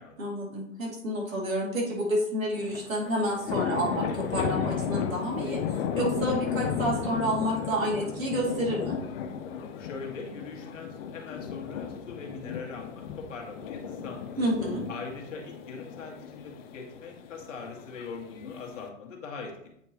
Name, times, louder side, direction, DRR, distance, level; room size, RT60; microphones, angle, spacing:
voice 1, 0.2-9.0 14.4-14.8, equal, 80° right, -3 dB, 2.6 m, -29 dB
sound 1, 2.5-18.9, left 7 dB, 45° left, 0.7 m, -34 dB
voice 2, 9.8-14.5 14.9-19.8, left 4 dB, 65° left, 1 dB, 1.8 m, -41 dB
8.5 x 4.4 x 2.9 m, 0.74 s
hypercardioid pair, 110°, 40 cm